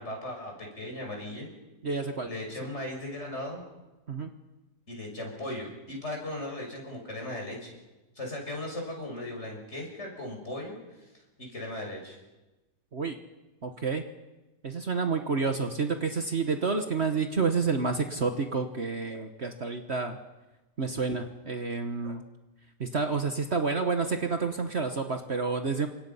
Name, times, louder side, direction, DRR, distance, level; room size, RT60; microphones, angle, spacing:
voice 1, 0.0-1.5 2.2-3.6 4.9-7.8 8.1-11.1 11.4-12.2, left 1 dB, 40° left, 1 dB, 6.3 m, -37 dB
voice 2, 1.8-2.3 4.1-4.3 12.9-13.2 13.6-14.0 14.6-20.2 20.8-22.2 22.8-25.9, right 4 dB, 45° right, 6 dB, 1.5 m, -29 dB
28.5 x 25.0 x 5.6 m, 1.1 s
omnidirectional pair, 1.7 m